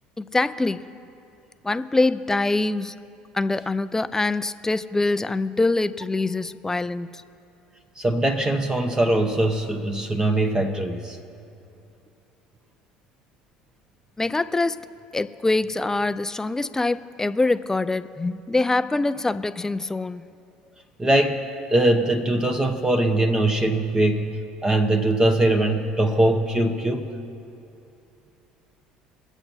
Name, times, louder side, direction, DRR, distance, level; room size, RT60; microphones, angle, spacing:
voice 1, 0.2-0.8 1.6-2.9 3.3-7.2 14.2-14.9 15.1-20.3, left 2 dB, 15° left, 14 dB, 0.4 m, -24 dB
voice 2, 8.0-11.2 21.0-24.3 24.6-27.1, right 1 dB, 20° right, 4 dB, 1.0 m, -21 dB
21.0 x 7.9 x 4.4 m, 2.8 s
hypercardioid pair, 70°, 3 cm